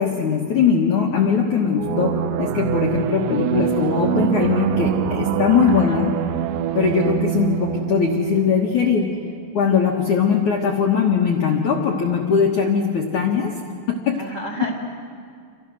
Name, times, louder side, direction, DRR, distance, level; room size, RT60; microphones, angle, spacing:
voice 1, 0.0-6.1 6.7-9.1 9.5-13.5 13.9-14.2, left 6 dB, 75° left, 1 dB, 1.8 m, -20 dB
sound 1, 1.8-9.2, right 11 dB, 80° right, 2.8 m, -24 dB
voice 2, 5.7-6.1 14.1-14.8, right 1 dB, 50° right, 1 dB, 1.9 m, -32 dB
29.0 x 25.5 x 6.4 m, 2.2 s
omnidirectional pair, 5.8 m